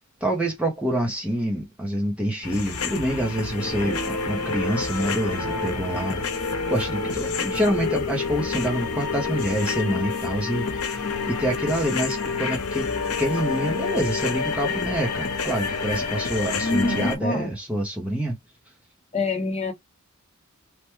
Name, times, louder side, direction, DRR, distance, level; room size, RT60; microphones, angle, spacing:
voice 1, 0.2-6.3 6.7-11.0 11.3-12.9 13.2-18.3, right 1 dB, 5° right, 0.6 m, -26 dB
sound 1, 2.4-17.2, left 4 dB, 80° left, 0.8 m, -28 dB
voice 2, 16.6-17.5 19.1-19.7, left 2 dB, 30° left, 0.8 m, -25 dB
3.2 x 2.2 x 3.0 m
head